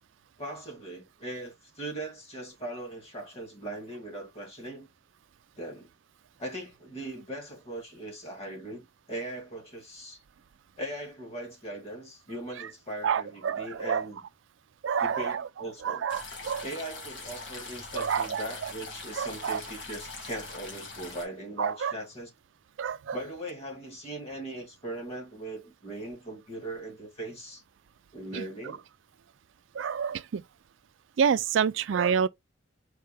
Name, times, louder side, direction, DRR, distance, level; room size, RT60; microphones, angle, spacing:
voice 1, 0.4-4.9 5.6-5.9 6.4-10.2 10.8-14.2 15.0-16.1 16.6-22.3 23.1-27.6 28.1-28.8, right 1 dB, 35° left, 2.0 m, -39 dB
voice 2, 13.0-14.1 14.8-15.5 15.8-16.6 17.9-18.7 19.2-19.6 21.6-21.9 22.8-23.2 28.3-28.4 29.7-30.4 31.2-32.3, right 7 dB, 80° right, 0.4 m, -28 dB
sound 1, 16.1-21.3, left 3 dB, 75° left, 1.6 m, -42 dB
4.6 x 3.2 x 3.3 m
head